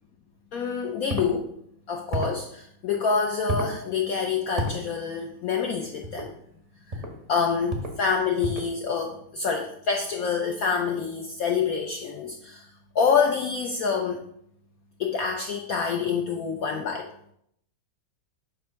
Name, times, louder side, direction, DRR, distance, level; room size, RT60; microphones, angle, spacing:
voice 1, 0.5-1.5 1.9-6.3 6.9-7.0 7.3-12.7 12.9-14.2 15.0-17.1, left 5 dB, 90° left, 2 dB, 0.7 m, -27 dB
sound 1, 1.1-1.3 2.1-2.4 3.5-3.8 4.6-4.8 6.0-6.3 6.9-7.2 7.7-8.0 8.4-8.7, equal, 50° right, 0.4 m, -30 dB
7.5 x 2.6 x 5.6 m, 0.71 s
omnidirectional pair, 2.2 m